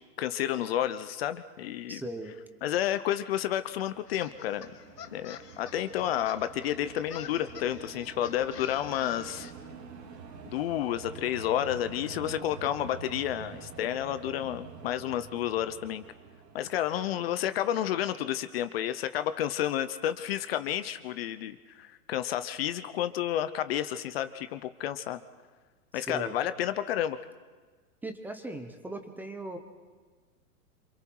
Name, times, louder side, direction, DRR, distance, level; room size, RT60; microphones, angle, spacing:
voice 1, 0.2-2.0 2.6-4.7 5.1-9.5 10.4-16.0 16.5-25.2 25.9-27.2, left 11 dB, 40° left, 12 dB, 0.8 m, -31 dB
voice 2, 1.9-2.4 25.9-26.4 28.0-29.6, right 2 dB, 5° right, 6 dB, 0.9 m, -38 dB
sound 1, 3.5-18.0, right 6 dB, 85° right, 3.2 m, -47 dB
sound 2, 4.1-9.5, left 9 dB, 80° left, 1.6 m, -49 dB
27.5 x 26.0 x 4.7 m, 1.4 s
hypercardioid pair, 150°, 47 cm